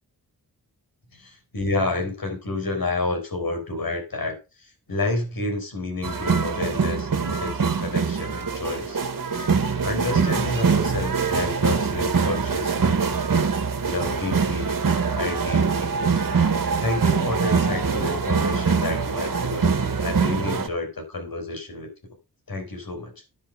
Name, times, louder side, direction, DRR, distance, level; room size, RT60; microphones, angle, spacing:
voice 1, 1.1-4.4 4.9-9.0 9.8-13.0 13.9-14.7 15.1-16.2 16.8-21.9 22.5-23.1, left 2 dB, 65° left, 4 dB, 5.5 m, -29 dB
sound 1, 6.0-20.7, right 5 dB, 55° right, 1.8 m, -23 dB
10.5 x 5.9 x 6.8 m, 0.28 s
wide cardioid pair, 75°, 38 cm